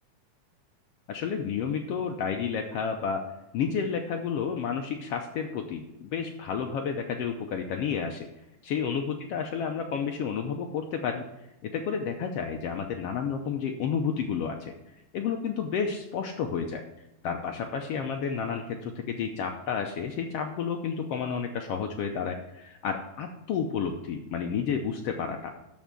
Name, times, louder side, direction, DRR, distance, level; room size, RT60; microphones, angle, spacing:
voice 1, 1.1-3.2 3.5-8.3 8.6-11.3 11.6-14.7 15.1-16.8 17.2-25.5, left 6 dB, 85° left, 4 dB, 1.3 m, -31 dB
12.5 x 4.6 x 6.0 m, 0.92 s
omnidirectional pair, 3.7 m